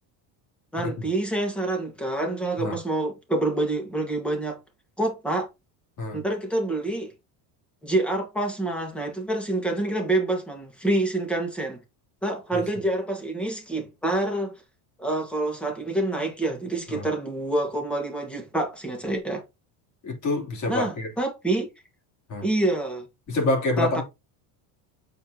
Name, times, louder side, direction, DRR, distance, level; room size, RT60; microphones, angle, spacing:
voice 1, 0.7-4.6 5.0-5.5 6.1-7.1 7.8-11.8 12.2-14.5 15.0-19.4 20.7-21.7 22.4-23.1 23.8-24.0, right 2 dB, ahead, 1.6 m, -27 dB
voice 2, 20.0-21.1 22.3-22.4 23.3-24.0, left 2 dB, 40° left, 3.3 m, -27 dB
7.4 x 4.4 x 2.9 m
cardioid pair, 160°, 45 cm